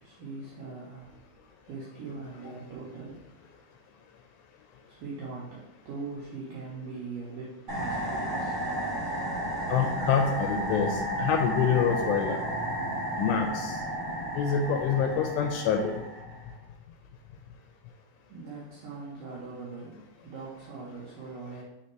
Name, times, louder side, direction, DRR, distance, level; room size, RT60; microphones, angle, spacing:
voice 1, 0.0-1.2 1.4-3.8 4.9-8.7 18.3-21.6, right 4 dB, 80° right, -7 dB, 2.0 m, -41 dB
sound 1, 7.7-16.5, right 1 dB, 35° right, 1.1 m, -32 dB
voice 2, 9.7-12.4 13.2-13.8 14.4-16.0, left 7 dB, 85° left, 4 dB, 2.5 m, -26 dB
6.4 x 3.5 x 4.5 m, 0.93 s
omnidirectional pair, 5.2 m